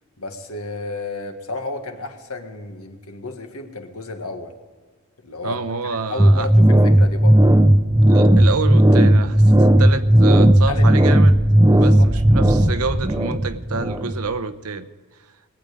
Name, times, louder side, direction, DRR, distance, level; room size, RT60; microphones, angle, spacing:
voice 1, 0.2-4.6 5.2-7.4 10.7-10.9 11.7-12.1, left 2 dB, 80° left, 5 dB, 1.7 m, -32 dB
voice 2, 5.4-6.5 8.1-11.4 11.8-14.9, right 4 dB, 90° right, 11 dB, 0.9 m, -27 dB
sound 1, 6.2-14.4, right 1 dB, 15° right, 0.7 m, -14 dB
21.0 x 8.9 x 5.1 m, 1.5 s
head